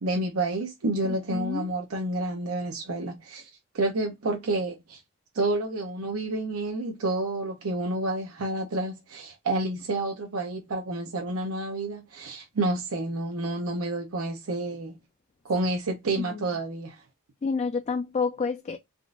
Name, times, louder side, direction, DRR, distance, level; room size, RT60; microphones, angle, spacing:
voice 1, 0.0-3.5 3.7-5.0 5.3-14.9 15.4-17.0, right 2 dB, 85° right, 0.6 m, -29 dB
voice 2, 1.3-1.7 16.3-16.4 17.4-18.8, left 4 dB, 30° left, 0.3 m, -28 dB
3.6 x 2.4 x 2.4 m
head